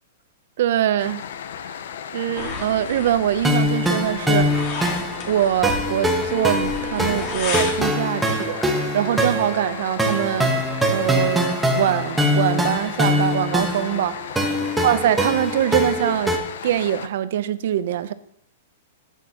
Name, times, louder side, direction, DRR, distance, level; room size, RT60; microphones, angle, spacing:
voice 1, 0.6-1.2 1.6-1.8 2.1-4.7 5.3-8.6 8.9-10.5 10.9-14.4 14.8-16.3 16.6-18.1, right 11 dB, 60° right, 0.6 m, -23 dB
sound 1, 1.0-17.1, left 8 dB, 70° left, 0.6 m, -35 dB
sound 2, 2.3-7.8, left 4 dB, 35° left, 2.0 m, -33 dB
sound 3, 3.4-16.4, equal, 5° right, 1.0 m, -23 dB
11.5 x 8.3 x 2.9 m
hypercardioid pair, 160°, 0 cm